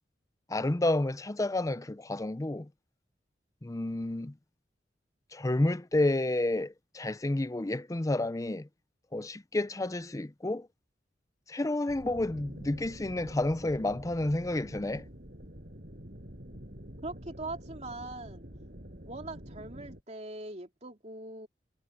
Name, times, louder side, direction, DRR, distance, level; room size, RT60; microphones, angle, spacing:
voice 1, 0.5-2.7 3.6-4.3 5.3-8.7 9.1-10.7 11.5-15.0, left 2 dB, 20° left, 0.5 m, -30 dB
sound 1, 11.9-20.0, equal, 55° right, 6.9 m, -47 dB
voice 2, 17.0-18.5 19.0-21.5, right 2 dB, 40° right, 3.1 m, -41 dB
head